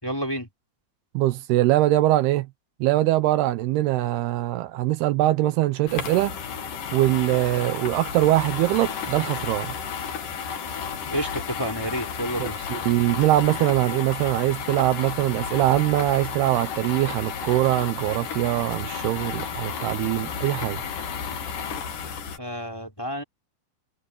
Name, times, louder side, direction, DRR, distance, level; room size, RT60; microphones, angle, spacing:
voice 1, 0.0-0.5 11.1-12.6 22.4-23.2, right 1 dB, 5° left, 4.3 m, -29 dB
voice 2, 1.1-2.5 2.8-6.4 6.9-9.7 12.4-20.8, right 16 dB, 80° right, 2.8 m, -22 dB
sound 1, 5.9-22.4, left 7 dB, 60° left, 3.3 m, -33 dB
omnidirectional pair, 4.7 m